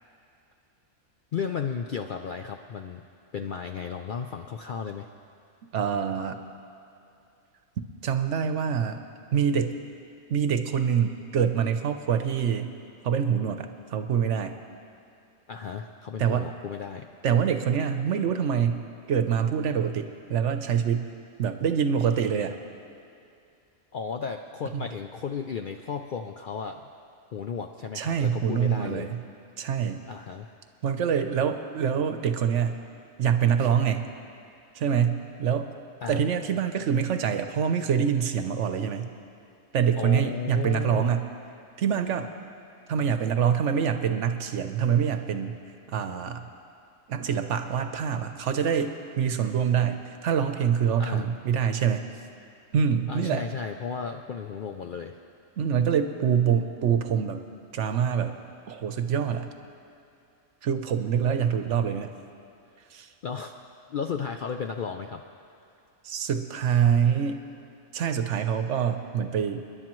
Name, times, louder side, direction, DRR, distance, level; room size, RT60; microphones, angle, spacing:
voice 1, 1.3-3.0 3.3-5.1 15.5-17.1 23.9-26.9 27.3-29.1 30.1-30.5 36.0-36.3 40.0-41.2 51.0-51.3 53.1-55.2 63.2-63.5 63.9-65.2, left 6 dB, 65° left, 5 dB, 0.5 m, -34 dB
voice 2, 5.7-6.4 8.0-9.0 9.3-9.7 10.3-12.7 13.0-14.5 16.2-16.5 17.2-18.8 19.1-21.0 21.4-22.5 24.7-24.8 27.9-29.2 29.6-30.0 30.8-32.8 33.2-34.0 34.7-35.7 36.1-39.1 39.7-41.3 41.8-42.3 42.9-45.5 45.9-46.5 47.1-52.1 52.7-53.4 55.6-57.4 57.7-58.3 58.7-59.5 60.6-62.1 62.9-63.1 66.0-67.4 67.9-69.6, right 7 dB, 70° right, 8 dB, 1.0 m, -25 dB
29.0 x 10.5 x 3.1 m, 2.6 s
omnidirectional pair, 1.4 m